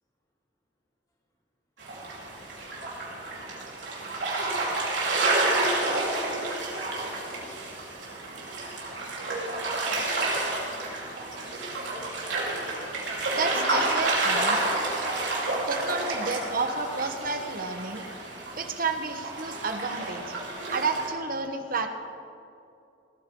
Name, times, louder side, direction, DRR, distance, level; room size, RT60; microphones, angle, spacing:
sound 1, 1.8-21.1, right 2 dB, 85° right, 4.1 m, -30 dB
voice 1, 3.8-4.5 13.7-14.1 14.6-15.7 16.0-17.1, left 1 dB, 20° left, -5 dB, 3.7 m, -39 dB
voice 2, 13.3-14.6 15.7-18.0 18.5-20.3 20.7-21.9, right 4 dB, 55° right, 6 dB, 1.2 m, -31 dB
19.0 x 13.5 x 3.8 m, 2.6 s
head